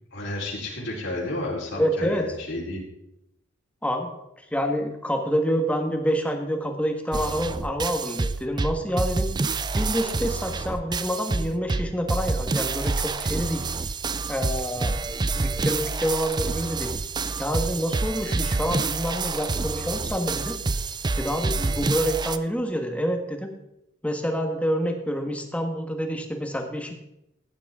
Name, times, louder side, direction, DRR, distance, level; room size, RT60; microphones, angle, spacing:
voice 1, 0.1-2.8 14.7-14.9 21.4-21.8, left 1 dB, 65° left, -3 dB, 3.9 m, -32 dB
voice 2, 1.7-2.2 3.8-4.1 4.4-9.3 9.7-13.7 14.3-15.0 15.3-16.9 17.4-20.6 21.1-23.5 24.0-27.1, equal, 5° left, 4 dB, 1.5 m, -27 dB
sound 1, 7.1-22.4, right 3 dB, 20° right, 0.4 m, -28 dB
14.5 x 10.0 x 3.6 m, 0.85 s
head